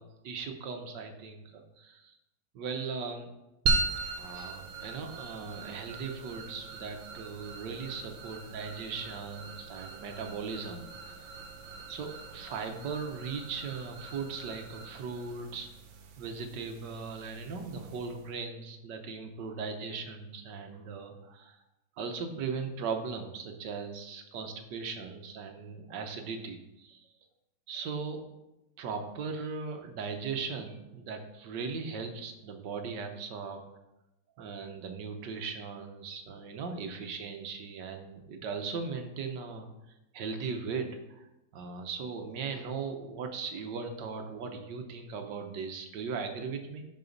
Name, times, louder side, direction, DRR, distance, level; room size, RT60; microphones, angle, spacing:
voice 1, 0.0-2.1 2.5-3.3 4.1-11.3 11.9-15.7 16.2-21.6 22.0-27.1 27.7-28.2 28.8-33.6 34.4-39.7 40.1-46.8, right 5 dB, 70° right, 5 dB, 1.5 m, -38 dB
sound 1, 3.7-18.3, right 4 dB, 85° right, 1.7 m, -39 dB
11.0 x 5.0 x 3.9 m, 0.93 s
omnidirectional pair, 2.1 m